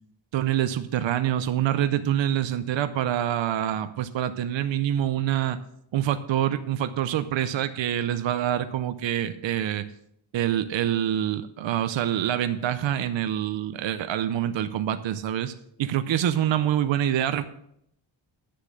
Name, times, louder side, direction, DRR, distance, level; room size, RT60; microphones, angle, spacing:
voice 1, 0.3-5.6 5.9-9.9 10.3-15.5 15.8-17.4, right 11 dB, 70° right, 11 dB, 0.7 m, -26 dB
9.7 x 6.8 x 6.5 m, 0.73 s
wide cardioid pair, 130°, 47 cm